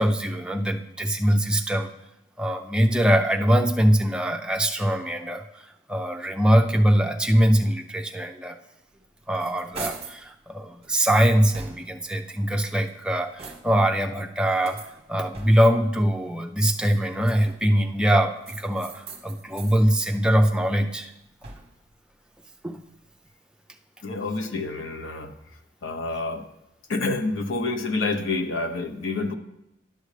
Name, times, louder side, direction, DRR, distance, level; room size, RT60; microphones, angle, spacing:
voice 1, 0.0-1.9 2.4-8.6 9.3-14.8 15.1-21.1 22.6-22.8, equal, 5° right, 2 dB, 0.5 m, -22 dB
sound 1, 8.9-10.3 10.8-12.1 12.7-13.9 14.6-15.8 16.7-17.8 18.4-19.8 20.2-21.9, right 4 dB, 30° right, 0.9 m, -42 dB
voice 2, 24.0-26.4 26.9-29.3, left 3 dB, 75° left, 6 dB, 0.8 m, -28 dB
11.0 x 6.3 x 3.3 m, 0.87 s
head